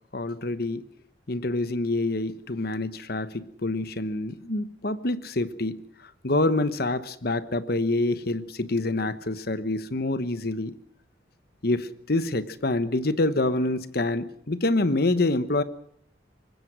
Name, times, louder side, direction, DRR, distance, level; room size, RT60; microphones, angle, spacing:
voice 1, 0.1-0.8 1.3-5.8 6.2-10.8 11.6-15.6, left 2 dB, 55° left, 14 dB, 1.2 m, -26 dB
24.0 x 20.5 x 6.2 m, 0.65 s
head